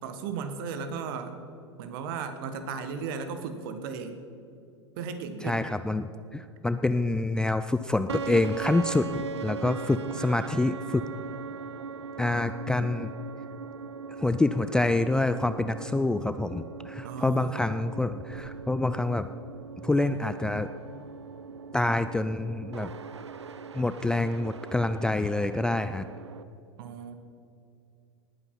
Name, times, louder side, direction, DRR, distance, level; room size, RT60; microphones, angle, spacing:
voice 1, 0.0-1.4 1.8-4.2 5.0-5.6 17.0-17.6 26.8-27.2, right 5 dB, 50° right, 9 dB, 1.5 m, -35 dB
voice 2, 5.4-9.1 9.4-11.0 12.2-13.1 14.2-19.3 19.8-20.7 21.7-22.9 23.7-26.1, left 2 dB, 5° left, 10 dB, 0.3 m, -27 dB
sound 1, 8.1-26.4, right 5 dB, 75° right, 0.6 m, -40 dB
19.0 x 8.7 x 5.8 m, 2.5 s
figure-of-eight pair, 85°, 15 cm